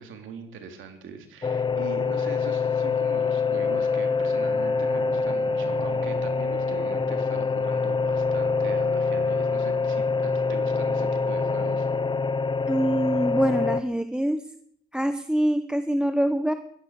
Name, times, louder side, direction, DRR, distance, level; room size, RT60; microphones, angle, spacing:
voice 1, 0.0-11.9, right 6 dB, 80° right, 5 dB, 3.1 m, -42 dB
sound 1, 1.4-13.8, left 4 dB, 25° left, 0.7 m, -25 dB
voice 2, 12.7-14.4 14.9-16.5, right 1 dB, 5° right, 9 dB, 1.1 m, -24 dB
16.5 x 12.5 x 6.6 m, 0.67 s
cardioid pair, 90°, 20 cm